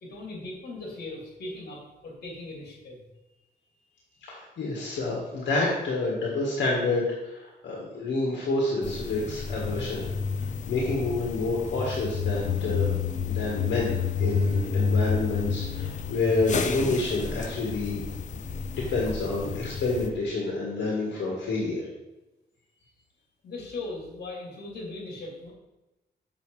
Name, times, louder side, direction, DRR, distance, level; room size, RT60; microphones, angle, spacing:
voice 1, 0.0-3.1 23.4-25.5, left 2 dB, 60° left, -1 dB, 3.0 m, -39 dB
voice 2, 4.3-10.0 10.7-12.9 13.3-13.9 14.2-18.0 18.3-18.4 18.9-21.9, left 2 dB, 85° left, -3 dB, 1.8 m, -28 dB
sound 1, 8.8-20.1, left 5 dB, 40° left, 0.7 m, -30 dB
7.0 x 6.7 x 4.9 m, 1.0 s
wide cardioid pair, 150°, 18 cm